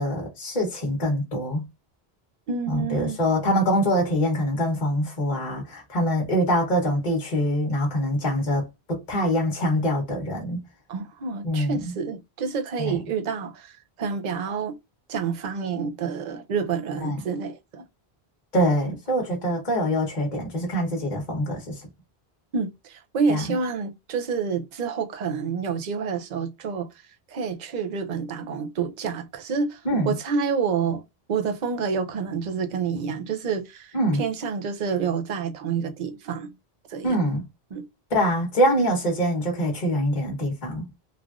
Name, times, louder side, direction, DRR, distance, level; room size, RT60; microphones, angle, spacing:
voice 1, 0.0-1.6 2.7-10.6 11.4-11.8 12.8-13.0 17.0-17.2 18.5-21.9 23.3-23.4 29.8-30.1 33.9-34.2 37.0-37.4 38.1-40.9, equal, 45° left, 1.1 m, -24 dB
voice 2, 2.5-3.2 10.9-14.8 15.1-17.8 18.9-19.0 22.5-27.0 27.3-31.0 31.3-36.5 36.9-37.2 37.7-37.9, right 5 dB, 50° right, 0.7 m, -28 dB
3.2 x 2.4 x 2.3 m
omnidirectional pair, 1.1 m